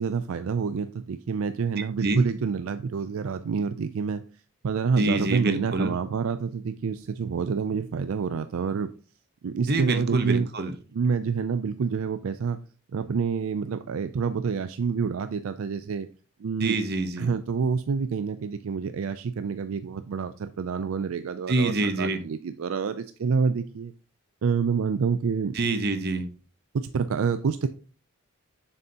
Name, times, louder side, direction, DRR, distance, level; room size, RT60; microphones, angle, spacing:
voice 1, 0.0-4.2 4.6-8.9 9.4-10.5 10.9-12.6 12.9-16.1 16.4-16.8 17.2-21.7 22.0-23.9 24.4-25.5 26.7-27.7, right 5 dB, 70° right, 0.4 m, -27 dB
voice 2, 1.8-2.3 5.0-5.9 9.7-10.7 16.6-17.3 21.5-22.2 25.5-26.3, right 2 dB, 50° right, 0.9 m, -26 dB
7.0 x 6.7 x 2.8 m
head